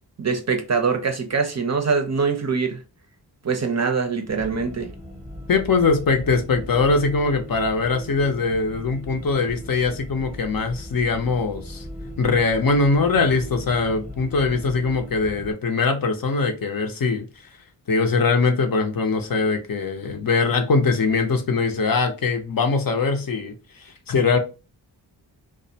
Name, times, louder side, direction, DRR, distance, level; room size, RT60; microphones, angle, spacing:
voice 1, 0.2-2.8 3.4-4.9, right 5 dB, 40° right, 0.5 m, -23 dB
sound 1, 4.3-15.5, equal, 5° right, 0.8 m, -38 dB
voice 2, 5.5-11.8 12.2-17.2 17.9-23.5 24.1-24.4, left 4 dB, 55° left, 0.6 m, -22 dB
2.4 x 2.1 x 2.7 m
wide cardioid pair, 65°, 42 cm